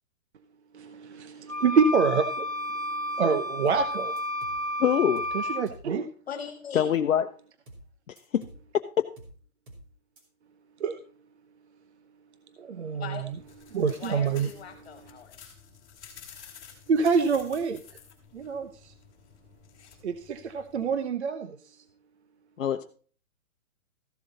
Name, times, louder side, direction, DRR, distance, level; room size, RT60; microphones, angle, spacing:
voice 1, 0.7-4.2 5.3-6.1 10.8-11.0 12.6-13.2 13.7-14.5 16.9-17.8 18.3-18.9 20.0-21.8, right 5 dB, 50° right, 10 dB, 0.8 m, -27 dB
sound 1, 1.5-5.6, left 1 dB, 30° left, 0.4 m, -31 dB
sound 2, 3.7-3.9 4.2-4.6 5.2-5.4 5.7-5.9 7.7-7.9 8.2-8.6 9.2-9.4 9.7-9.9 10.2-10.3, right 1 dB, 35° right, 2.8 m, -48 dB
voice 2, 4.8-5.3 6.7-7.3 8.1-8.4 22.6-22.8, left 9 dB, 65° left, 6 dB, 0.9 m, -24 dB
voice 3, 6.3-7.0 13.0-13.3 14.0-15.4, left 7 dB, 45° left, 6 dB, 1.8 m, -40 dB
sound 3, 13.1-21.0, left 7 dB, 15° left, 2.4 m, -52 dB
14.5 x 7.4 x 4.0 m, 0.41 s
hypercardioid pair, 175°, 43 cm